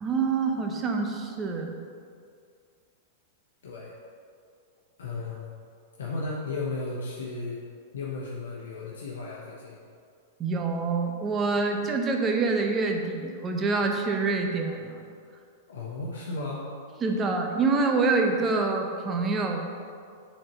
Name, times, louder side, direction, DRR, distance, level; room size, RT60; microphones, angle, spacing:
voice 1, 0.0-1.8 10.4-15.1 17.0-19.7, right 4 dB, 25° right, 3 dB, 1.0 m, -26 dB
voice 2, 3.6-4.0 5.0-5.5 6.0-7.6 7.9-9.8 15.7-16.7, left 3 dB, 65° left, -4 dB, 1.1 m, -34 dB
7.4 x 4.5 x 6.1 m, 2.2 s
figure-of-eight pair, 100°, 0 cm